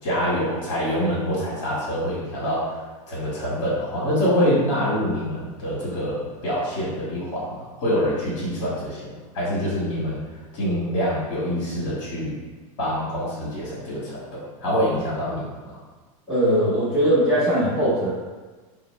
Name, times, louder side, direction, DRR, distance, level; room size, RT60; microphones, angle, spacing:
voice 1, 0.0-2.7 3.1-9.0 9.3-10.2 10.5-12.3 12.8-15.5, equal, 40° left, -8 dB, 1.3 m, -25 dB
voice 2, 16.3-18.1, equal, 5° right, -13 dB, 1.3 m, -20 dB
4.1 x 2.0 x 3.0 m, 1.3 s
supercardioid pair, 170°, 17 cm